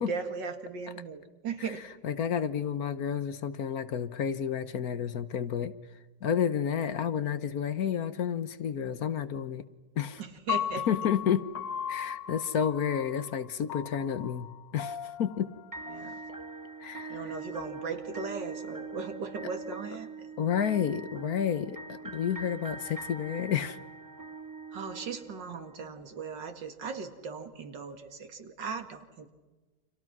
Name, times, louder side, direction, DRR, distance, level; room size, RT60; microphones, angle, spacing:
voice 1, 0.0-1.8 10.2-10.9 15.9-16.2 17.1-20.3 20.7-20.8 24.7-29.3, right 5 dB, 85° right, 7 dB, 2.7 m, -38 dB
voice 2, 2.0-5.7 6.2-9.6 10.0-10.2 10.9-11.5 11.9-15.5 16.3-16.4 16.8-17.2 20.4-23.8, left 8 dB, 60° left, 13 dB, 1.4 m, -30 dB
Piano, 10.5-16.7, left 10 dB, 90° left, 2.2 m, -37 dB
sound 1, 15.7-25.8, right 4 dB, 20° right, 0.5 m, -42 dB
30.0 x 26.5 x 6.0 m, 1.2 s
omnidirectional pair, 1.9 m